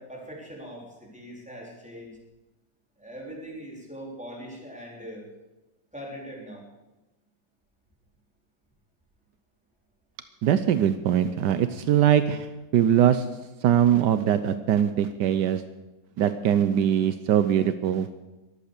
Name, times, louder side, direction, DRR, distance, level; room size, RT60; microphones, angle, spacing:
voice 1, 0.0-2.2 3.0-5.3 5.9-6.7, equal, 5° right, -3 dB, 3.8 m, -41 dB
voice 2, 10.4-12.5 12.7-13.3 13.6-15.6 16.2-18.1, right 10 dB, 75° right, 11 dB, 1.3 m, -22 dB
22.5 x 8.4 x 6.7 m, 1.1 s
omnidirectional pair, 1.9 m